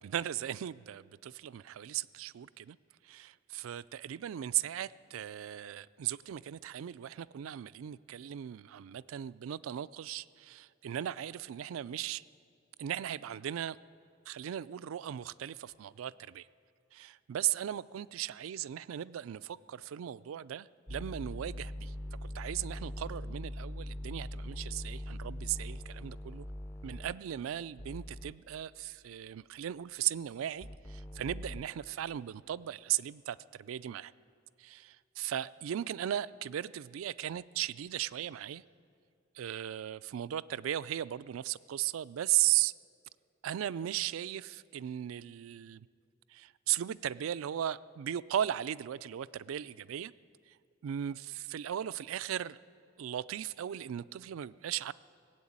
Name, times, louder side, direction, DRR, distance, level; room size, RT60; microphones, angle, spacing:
voice 1, 0.0-2.8 3.0-12.2 12.8-13.8 14.3-16.5 16.9-21.9 22.2-26.5 26.8-34.1 34.6-38.6 39.3-42.7 43.4-45.9 46.3-50.1 50.5-50.6 50.8-52.6 53.0-54.9, right 11 dB, 90° right, 18 dB, 0.3 m, -37 dB
sound 1, 20.9-27.1 27.8-28.3 30.6-31.6, left 1 dB, 10° left, 0.4 m, -41 dB
18.5 x 8.0 x 8.6 m, 2.3 s
head